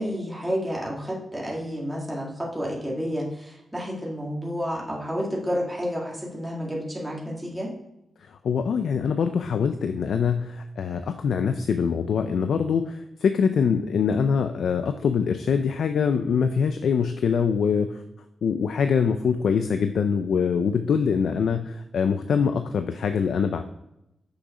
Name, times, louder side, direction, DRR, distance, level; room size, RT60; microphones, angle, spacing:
voice 1, 0.0-7.7, equal, 5° right, -4 dB, 1.9 m, -30 dB
voice 2, 8.3-18.0 18.4-23.6, left 6 dB, 85° left, 8 dB, 0.5 m, -24 dB
6.6 x 6.1 x 5.0 m, 0.87 s
wide cardioid pair, 115°, 0 cm